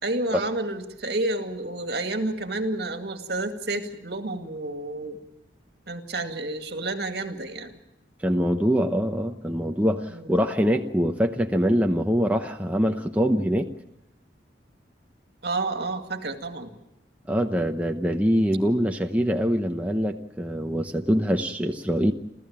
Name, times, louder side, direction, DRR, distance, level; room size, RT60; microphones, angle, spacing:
voice 1, 0.0-5.2 5.9-7.7 10.1-10.3 15.4-16.8, right 2 dB, 60° right, 6 dB, 2.2 m, -30 dB
voice 2, 8.2-13.7 17.3-22.1, equal, 10° right, 3 dB, 0.8 m, -24 dB
29.0 x 14.0 x 8.8 m, 0.88 s
head